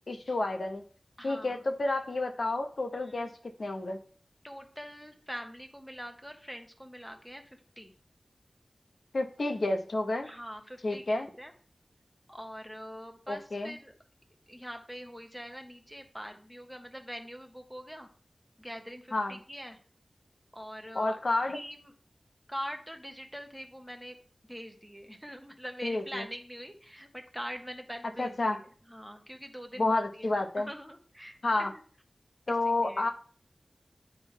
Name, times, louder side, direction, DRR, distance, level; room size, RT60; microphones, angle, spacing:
voice 1, 0.1-0.8 1.2-3.3 3.6-4.0 9.1-10.3 10.8-11.3 13.3-13.8 19.1-19.4 20.9-21.6 25.8-26.3 28.2-28.6 29.8-30.7 31.4-31.7 32.5-33.1, left 2 dB, 65° left, 5 dB, 0.9 m, -30 dB
voice 2, 1.2-1.6 3.0-3.3 4.4-7.9 10.2-11.5 12.3-13.9 14.5-18.1 18.6-19.8 20.5-21.2 21.5-21.9 22.5-24.2 24.5-31.8 32.5-33.1, equal, ahead, 5 dB, 1.1 m, -43 dB
9.1 x 3.8 x 4.5 m, 0.43 s
wide cardioid pair, 75°, 0 cm